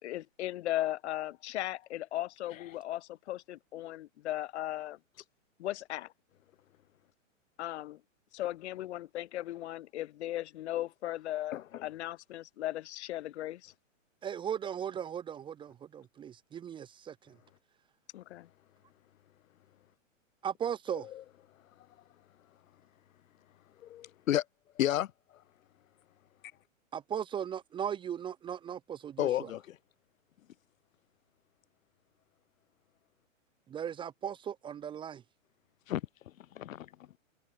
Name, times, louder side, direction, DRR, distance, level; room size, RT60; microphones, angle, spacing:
voice 1, 0.0-5.0 5.6-6.1 7.6-8.0 8.3-13.7 18.1-18.5, left 14 dB, 55° left, 1.5 m, -37 dB
voice 2, 14.2-17.4 20.4-21.1 26.9-29.5 33.7-35.2, right 9 dB, 10° right, 0.8 m, -37 dB
voice 3, 23.9-24.4 24.8-25.1 29.2-29.8 35.9-36.0 36.6-36.9, left 12 dB, 85° left, 0.7 m, -31 dB
hypercardioid pair, 140°, 40 cm